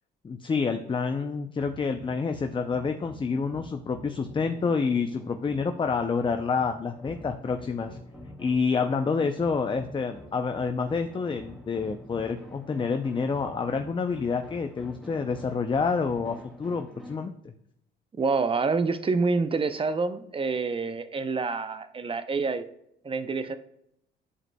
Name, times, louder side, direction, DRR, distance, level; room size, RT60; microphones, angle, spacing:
voice 1, 0.2-8.0 8.4-17.3, left 5 dB, 25° left, 6 dB, 0.5 m, -28 dB
sound 1, 1.6-17.3, equal, ahead, 2.3 m, -47 dB
voice 2, 18.2-22.6 23.0-23.6, right 4 dB, 25° right, 11 dB, 0.6 m, -27 dB
11.0 x 4.9 x 2.2 m, 0.77 s
cardioid pair, 90°, 20 cm